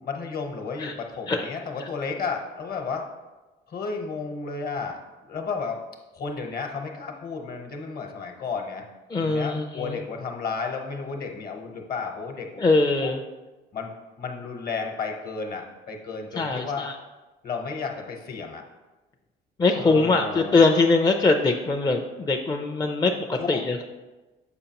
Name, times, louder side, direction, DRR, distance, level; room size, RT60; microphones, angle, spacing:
voice 1, 0.0-3.0 3.7-5.8 6.1-8.8 9.2-13.1 13.7-13.9 14.2-16.9 17.4-18.6 19.8-20.6 23.4-23.6, left 5 dB, 50° left, 3 dB, 1.0 m, -33 dB
voice 2, 9.1-10.0 12.6-13.2 16.4-16.9 19.6-23.8, left 3 dB, 20° left, 3 dB, 0.4 m, -22 dB
6.8 x 5.0 x 2.9 m, 1.1 s
cardioid pair, 90°, 19 cm